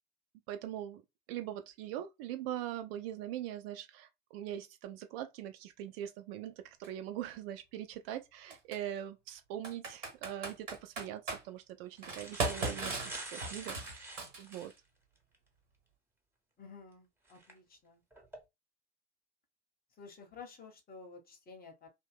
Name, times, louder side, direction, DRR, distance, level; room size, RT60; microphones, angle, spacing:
voice 1, 0.5-1.0 1.3-14.7, right 11 dB, 55° right, 0.5 m, -42 dB
Computer keyboard, 6.8-6.9 8.5-8.8 9.6-11.4 12.0-14.7, right 3 dB, 80° right, 1.0 m, -37 dB
sound 1, 10.6-10.8 11.6-11.7 12.0-14.8 15.3-15.4 17.3-17.5 18.1-18.4, right 2 dB, 5° right, 0.8 m, -46 dB
voice 2, 16.6-18.0 20.0-21.9, left 4 dB, 25° left, 0.9 m, -52 dB
2.7 x 2.2 x 3.1 m
figure-of-eight pair, 70°, 37 cm